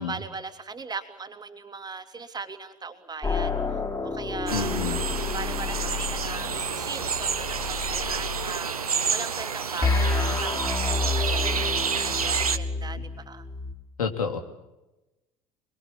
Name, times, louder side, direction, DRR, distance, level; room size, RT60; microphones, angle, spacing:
voice 1, 0.0-4.7 5.3-13.4, right 4 dB, 20° right, 8 dB, 2.7 m, -39 dB
sound 1, 3.2-8.5 9.8-13.7, left 3 dB, 20° left, 5.1 m, -30 dB
voice 2, 4.5-5.0 14.0-14.4, left 6 dB, 75° left, 5 dB, 3.0 m, -28 dB
sound 2, 4.5-12.6, right 6 dB, 85° right, 1.1 m, -29 dB
25.0 x 23.0 x 8.6 m, 1.0 s
figure-of-eight pair, 65°, 18 cm